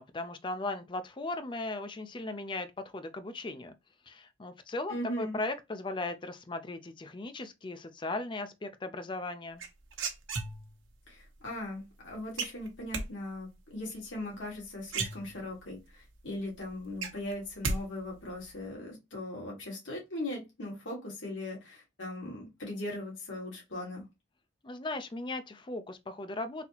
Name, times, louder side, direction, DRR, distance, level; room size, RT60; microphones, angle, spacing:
voice 1, 0.0-3.7 4.1-9.6 24.6-26.7, left 2 dB, 25° left, 0.5 m, -37 dB
voice 2, 4.9-5.4 11.1-24.0, left 1 dB, 75° left, 1.8 m, -39 dB
sound 1, 9.6-10.9 12.4-13.1 14.5-14.6 14.9-15.7 16.1-16.2 16.5-17.8 18.0-18.5, right 4 dB, 85° right, 0.9 m, -34 dB
4.0 x 2.8 x 2.8 m
head